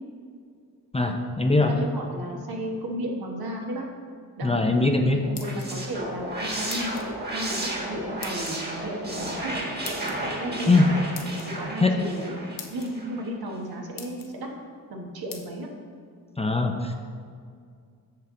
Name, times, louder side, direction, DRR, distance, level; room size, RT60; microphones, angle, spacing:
voice 1, 0.9-1.7 4.4-5.2 10.7-10.9 11.8-12.0 16.4-17.0, left 2 dB, 15° left, 4 dB, 0.5 m, -21 dB
voice 2, 1.7-3.9 4.4-4.6 5.1-7.0 7.3-9.6 10.3-10.8 11.5-12.3 12.7-14.5 14.9-15.7, equal, 85° right, 0 dB, 1.2 m, -34 dB
sound 1, 5.1-6.0 6.7-7.1 8.2-8.5 9.8-10.2 11.1-11.5 12.2-12.3 12.6-12.9 13.5-13.6 14.0-14.3 15.3-15.4, left 6 dB, 65° left, 0.9 m, -41 dB
sound 2, 5.2-13.3, right 1 dB, 25° right, 1.4 m, -33 dB
7.4 x 6.5 x 3.7 m, 2.2 s
wide cardioid pair, 100°, 36 cm